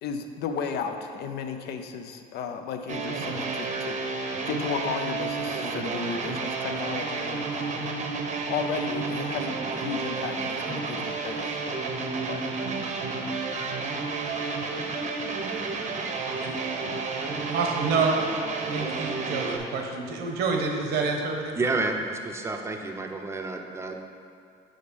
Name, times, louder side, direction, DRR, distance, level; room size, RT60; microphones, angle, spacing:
voice 1, 0.0-7.9 8.5-11.5 12.3-12.5, left 6 dB, 70° left, 7 dB, 0.5 m, -34 dB
sound 1, 2.9-19.6, right 4 dB, 45° right, 0.7 m, -31 dB
voice 2, 17.5-18.4 18.7-21.7, right 4 dB, 75° right, 2 dB, 1.0 m, -27 dB
voice 3, 21.6-24.0, right 3 dB, 15° right, 4 dB, 0.6 m, -30 dB
5.2 x 5.0 x 5.2 m, 2.4 s
cardioid pair, 110°, 17 cm